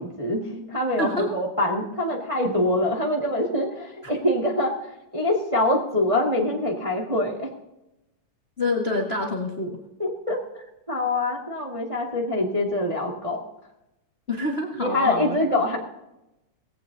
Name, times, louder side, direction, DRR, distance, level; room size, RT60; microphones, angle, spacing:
voice 1, 0.0-7.5 10.0-13.4 14.8-15.8, left 1 dB, 15° right, -1 dB, 1.2 m, -25 dB
voice 2, 1.0-1.3 8.6-9.8 14.3-15.4, left 2 dB, 30° left, 0 dB, 1.1 m, -26 dB
19.0 x 17.0 x 2.8 m, 0.93 s
omnidirectional pair, 3.7 m